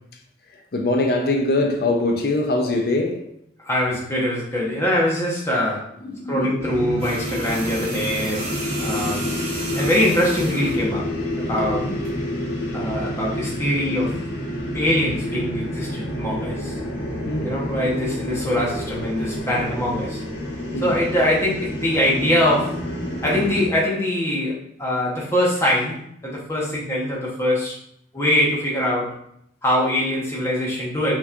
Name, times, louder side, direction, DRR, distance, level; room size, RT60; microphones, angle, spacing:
voice 1, 0.7-3.3 6.0-6.6 11.6-11.9 17.2-17.6 20.7-20.9, left 2 dB, 55° left, 0.5 m, -23 dB
voice 2, 3.6-5.9 6.3-8.5 8.8-9.3 9.7-11.9 12.7-14.2 14.7-16.8 17.4-20.2 20.8-22.8 23.2-27.8 28.1-29.2 29.6-31.2, left 1 dB, 15° left, 1.1 m, -23 dB
sound 1, 6.6-23.7, left 1 dB, 75° left, 1.7 m, -28 dB
sound 2, 7.0-10.9 12.0-12.2, right 2 dB, 30° right, 1.4 m, -33 dB
5.8 x 3.0 x 2.5 m
head